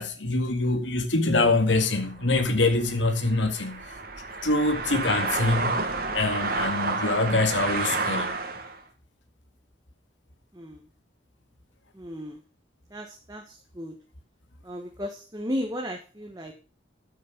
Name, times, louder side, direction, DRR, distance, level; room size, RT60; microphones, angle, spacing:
voice 1, 0.0-3.8 4.4-5.9 6.1-8.4, left 2 dB, 90° left, 2.1 m, -24 dB
sound 1, 1.6-8.8, right 3 dB, 55° right, 1.7 m, -30 dB
voice 2, 10.5-10.9 11.9-12.4 12.9-13.9 14.6-16.5, equal, 20° right, 1.3 m, -35 dB
12.5 x 6.6 x 5.1 m
head